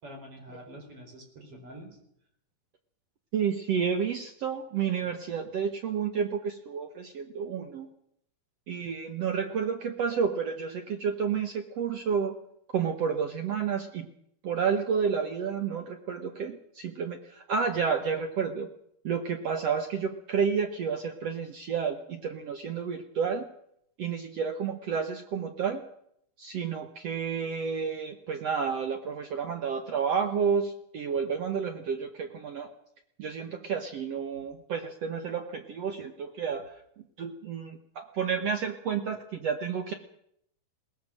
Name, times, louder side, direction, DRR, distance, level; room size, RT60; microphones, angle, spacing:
voice 1, 0.0-1.9 34.3-34.5, equal, 40° right, 4 dB, 5.3 m, -46 dB
voice 2, 3.3-7.9 8.7-12.4 12.7-14.1 14.4-18.7 19.0-23.5 24.0-25.8 26.4-32.7 33.2-36.8 37.2-39.9, right 6 dB, 60° right, 6 dB, 1.8 m, -30 dB
21.5 x 19.0 x 6.5 m, 0.73 s
omnidirectional pair, 4.2 m